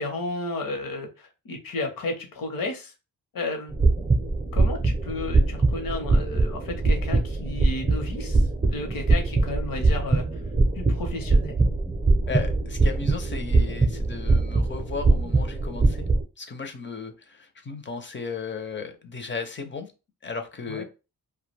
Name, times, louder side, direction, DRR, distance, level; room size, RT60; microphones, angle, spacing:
voice 1, 0.0-2.9 3.3-3.7 4.5-8.4 8.7-10.3 10.8-11.6 20.7-20.8, left 2 dB, 65° left, 4 dB, 0.9 m, -33 dB
sound 1, 3.7-16.2, right 3 dB, 15° right, 0.6 m, -22 dB
voice 2, 12.3-16.1 16.4-19.9 20.2-20.8, left 5 dB, 30° left, 6 dB, 0.6 m, -35 dB
2.2 x 2.2 x 3.2 m, 0.29 s
cardioid pair, 75°, 37 cm